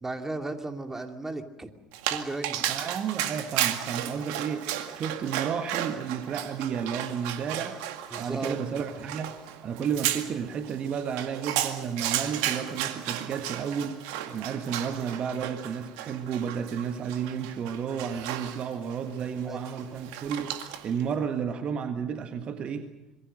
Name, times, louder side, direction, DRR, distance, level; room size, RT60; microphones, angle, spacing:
voice 1, 0.0-1.7 2.1-2.7 8.1-8.6 19.4-19.6, right 2 dB, 15° right, 5 dB, 2.6 m, -35 dB
Dog, 1.9-21.0, right 11 dB, 65° right, 2.0 m, -34 dB
voice 2, 2.7-4.7 5.0-7.8 8.2-9.3 9.6-20.6 20.8-22.9, right 7 dB, 45° right, 7 dB, 1.7 m, -32 dB
26.5 x 22.5 x 6.6 m, 0.96 s
figure-of-eight pair, 65°, 3 cm